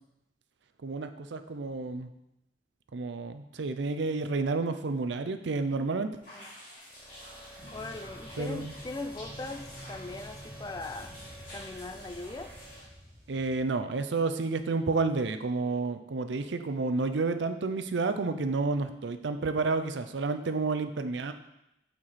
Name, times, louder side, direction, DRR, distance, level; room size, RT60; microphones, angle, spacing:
voice 1, 0.8-2.1 2.9-6.1 8.4-8.7 13.3-21.3, right 3 dB, 80° right, 9 dB, 0.5 m, -30 dB
sound 1, 6.2-12.8, equal, 50° left, 2.7 m, -49 dB
sound 2, 6.8-12.8, equal, 10° right, 0.9 m, -51 dB
sound 3, 7.6-13.6, equal, 45° right, 1.6 m, -49 dB
voice 2, 7.7-11.2 11.5-12.5, left 2 dB, 20° left, 7 dB, 0.4 m, -40 dB
8.7 x 4.6 x 4.2 m, 0.88 s
head